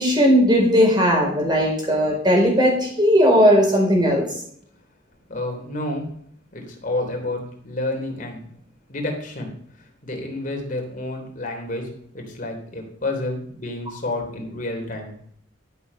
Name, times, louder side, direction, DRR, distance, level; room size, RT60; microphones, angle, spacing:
voice 1, 0.0-4.2, equal, 25° right, -1 dB, 4.5 m, -17 dB
voice 2, 5.3-6.1 6.5-8.5 8.9-9.5 10.0-15.1, left 2 dB, 45° left, 2 dB, 3.1 m, -29 dB
12.0 x 7.1 x 5.5 m, 0.64 s
head